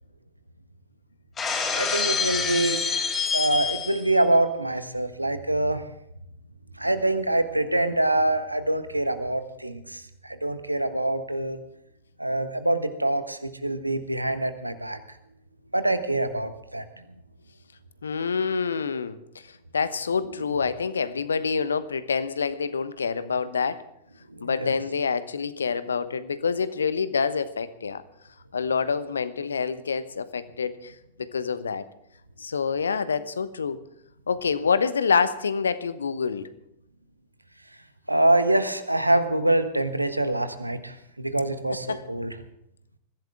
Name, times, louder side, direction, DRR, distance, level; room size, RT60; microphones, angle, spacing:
Shatter, 1.4-4.1, left 5 dB, 20° left, 3.8 m, -26 dB
voice 1, 1.7-2.8 3.3-5.8 6.8-11.6 12.2-15.0 15.7-16.8 24.3-24.8 38.1-42.3, right 1 dB, 85° right, 10 dB, 1.3 m, -25 dB
voice 2, 18.0-19.2 19.7-23.8 24.4-28.0 28.5-30.9 31.2-31.8 32.4-33.8 34.3-36.5 41.9-42.0, left 5 dB, 70° left, 14 dB, 1.0 m, -27 dB
21.5 x 15.5 x 3.7 m, 0.76 s
figure-of-eight pair, 90°, 0 cm